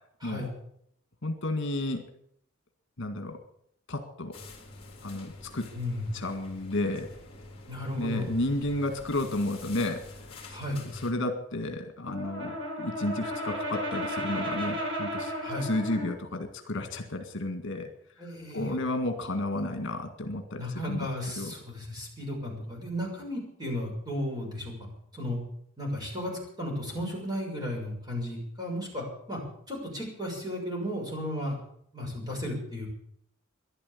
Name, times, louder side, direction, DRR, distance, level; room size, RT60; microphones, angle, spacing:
voice 1, 1.2-2.0 3.0-3.4 3.9-4.3 5.0-5.7 6.1-7.1 8.0-10.1 10.9-15.3 15.6-17.9 18.5-21.1 21.4-21.5, left 1 dB, 60° left, 6 dB, 1.9 m, -32 dB
sound 1, 4.3-11.1, left 2 dB, 30° left, 3.8 m, -47 dB
voice 2, 5.7-6.1 7.7-8.3 10.5-10.8 15.4-15.7 18.2-18.8 20.6-24.7 25.1-25.4 25.8-26.3 26.6-29.4 29.7-31.6 31.9-32.9, left 1 dB, 20° right, -1 dB, 6.6 m, -34 dB
Brass instrument, 12.0-16.2, equal, 65° right, 4.2 m, -34 dB
13.5 x 11.5 x 8.5 m, 0.70 s
head